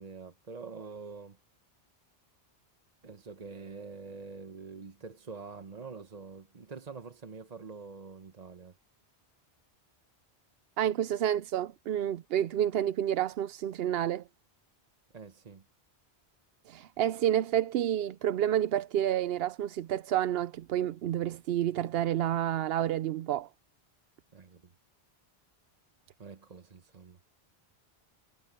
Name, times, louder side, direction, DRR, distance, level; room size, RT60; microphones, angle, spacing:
voice 1, 0.0-1.4 3.0-8.7 15.1-15.6 24.3-24.7 26.2-27.2, right 4 dB, 40° right, 1.0 m, -46 dB
voice 2, 10.8-14.2 16.7-23.5, right 11 dB, 70° right, 0.8 m, -29 dB
omnidirectional pair, 1.1 m